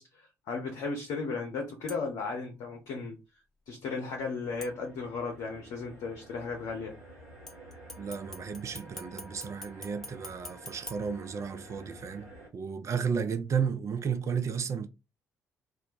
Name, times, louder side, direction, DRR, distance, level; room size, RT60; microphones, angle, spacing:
voice 1, 0.0-3.2 3.7-6.9, left 4 dB, 60° left, 0.7 m, -35 dB
sound 1, 1.9-2.3 4.6-5.3 7.5-11.9 12.3-12.4, left 1 dB, 5° left, 0.7 m, -48 dB
sound 2, 4.0-12.5, right 1 dB, 80° right, 1.0 m, -51 dB
voice 2, 8.0-14.9, right 6 dB, 40° right, 0.5 m, -33 dB
2.5 x 2.2 x 3.8 m
figure-of-eight pair, 45°, 8 cm